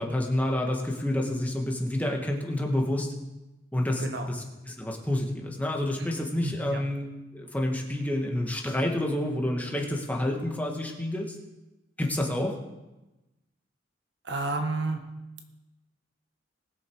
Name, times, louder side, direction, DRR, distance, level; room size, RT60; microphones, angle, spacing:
voice 1, 0.0-3.1 3.7-7.1 7.3-11.4 12.0-12.6, left 1 dB, 10° left, 0 dB, 1.5 m, -29 dB
voice 2, 6.4-6.8 14.2-15.0, right 2 dB, 60° right, 5 dB, 1.3 m, -31 dB
20.0 x 7.0 x 4.6 m, 1.0 s
head